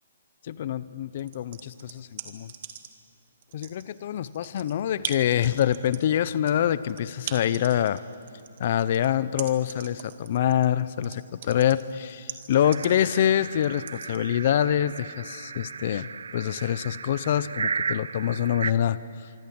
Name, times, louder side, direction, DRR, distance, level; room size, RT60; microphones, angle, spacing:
voice 1, 0.4-2.5 3.5-8.0 8.6-19.0, left 10 dB, 40° left, 17 dB, 0.6 m, -25 dB
sound 1, 1.2-3.1 3.4-14.2, right 9 dB, 40° right, 1.9 m, -40 dB
sound 2, 12.6-18.7, right 5 dB, 85° right, 0.6 m, -35 dB
25.5 x 24.5 x 8.7 m, 2.5 s
hypercardioid pair, 170°, 0 cm